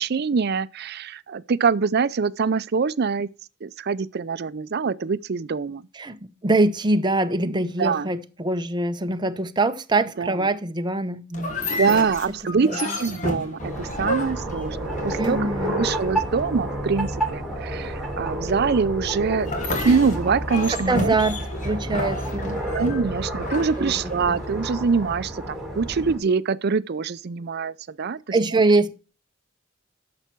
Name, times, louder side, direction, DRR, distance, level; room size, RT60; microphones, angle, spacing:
voice 1, 0.0-3.3 3.6-5.8 7.5-8.1 10.2-10.5 11.6-15.4 15.6-19.5 19.8-21.1 22.7-28.2, right 5 dB, 55° right, 0.5 m, -24 dB
voice 2, 5.9-11.8 12.6-12.8 15.2-15.9 20.7-21.4 21.6-22.6 23.8-24.4 28.3-28.9, right 2 dB, 20° right, 0.7 m, -24 dB
sound 1, 11.3-15.6 19.4-24.5, left 1 dB, 40° left, 1.7 m, -31 dB
sound 2, 13.6-26.2, right 1 dB, ahead, 3.0 m, -30 dB
10.5 x 6.8 x 4.5 m
head